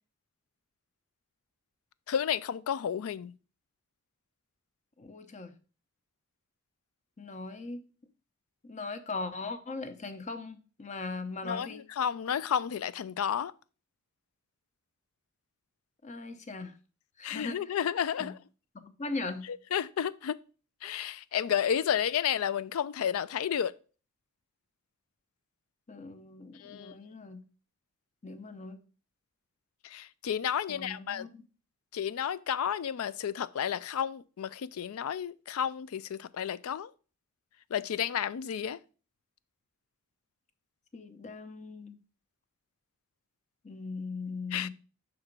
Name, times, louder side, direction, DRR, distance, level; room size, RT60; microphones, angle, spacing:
voice 1, 2.1-3.3 11.4-13.5 17.2-18.3 19.7-20.4 20.8-23.7 26.6-26.9 29.8-31.3 31.9-36.9 37.7-38.8 44.5-44.7, left 8 dB, 90° left, 0.4 m, -31 dB
voice 2, 5.0-5.5 7.2-7.8 8.6-11.8 16.0-16.7 17.2-17.8 18.2-18.3 18.7-19.5 25.9-27.4 28.2-28.8 30.7-31.4 40.9-42.0 43.6-44.7, left 3 dB, 35° left, 0.7 m, -39 dB
5.9 x 4.2 x 5.2 m
head